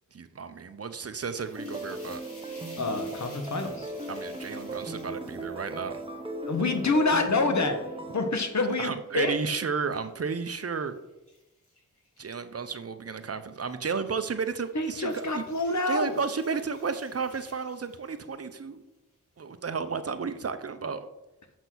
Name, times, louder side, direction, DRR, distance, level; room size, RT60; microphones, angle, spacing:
voice 1, 0.1-2.2 4.1-6.0 8.8-11.0 12.2-15.4 15.9-18.8 19.4-21.1, right 5 dB, 50° right, 9 dB, 0.8 m, -33 dB
sound 1, 1.0-8.2 8.7-12.7 13.6-13.9 14.3-18.4, left 1 dB, 45° left, 3.7 m, -55 dB
sound 2, 1.6-8.3, right 2 dB, 15° right, 1.1 m, -37 dB
voice 2, 2.8-3.9 6.5-7.8 8.1-9.3 14.7-16.1, left 3 dB, 60° left, 6 dB, 1.3 m, -27 dB
6.9 x 6.0 x 6.2 m, 0.96 s
wide cardioid pair, 75°, 32 cm